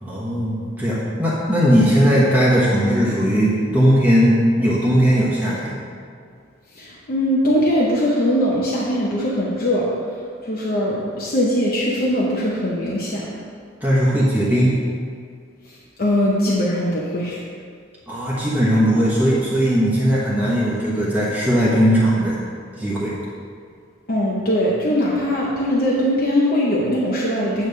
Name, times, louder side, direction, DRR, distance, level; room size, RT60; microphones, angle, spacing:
voice 1, 0.0-5.7 13.8-14.8 18.1-22.4 22.8-23.1, equal, 10° right, -7 dB, 1.0 m, -18 dB
voice 2, 6.8-9.9 10.4-13.3 15.7-17.4 24.1-27.7, equal, 50° left, -6 dB, 0.9 m, -21 dB
8.9 x 3.1 x 6.6 m, 2.2 s
head